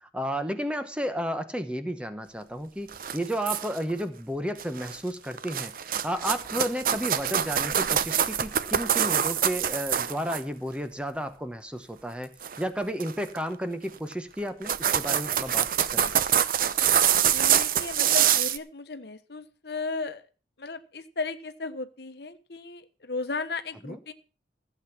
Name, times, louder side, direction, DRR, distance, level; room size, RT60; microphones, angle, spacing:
voice 1, 0.0-5.7 6.0-16.1 23.8-24.0, equal, 5° right, 9 dB, 1.0 m, -32 dB
sound 1, 2.9-3.9 4.6-5.0 5.3-10.4 12.4-12.6 13.0-13.4 14.1-14.2 14.5-18.6, right 9 dB, 50° right, 0.7 m, -25 dB
voice 2, 17.3-20.2 20.6-24.1, left 3 dB, 60° left, 10 dB, 1.1 m, -35 dB
15.5 x 8.0 x 5.9 m, 0.36 s
head